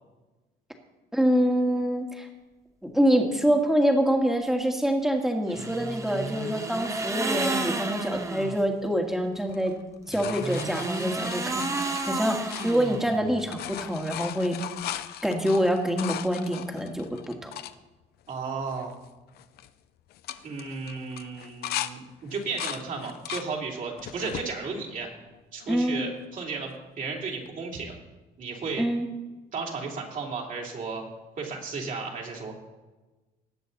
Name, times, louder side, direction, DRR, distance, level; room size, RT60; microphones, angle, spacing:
voice 1, 1.1-2.3 2.8-9.8 10.1-11.7 12.1-12.4 12.6-14.6 15.2-17.5 25.7-26.0 28.8-29.1, equal, ahead, 3 dB, 1.8 m, -25 dB
sound 1, 5.5-8.6 10.1-13.4, right 2 dB, 20° right, 1.1 m, -32 dB
sound 2, 9.5-13.1 13.4-17.7 18.3-18.4 18.6-19.1 19.4-19.7 20.1-21.9 22.3-23.5 24.0-24.5 25.1-25.8 27.5-27.6, left 12 dB, 70° left, 0.6 m, -38 dB
voice 2, 18.3-18.9 20.4-25.1 25.5-28.0 28.4-28.9 29.5-31.0 31.4-32.5, right 4 dB, 50° right, 0 dB, 3.1 m, -34 dB
19.0 x 7.5 x 4.1 m, 1.1 s
cardioid pair, 110°, 17 cm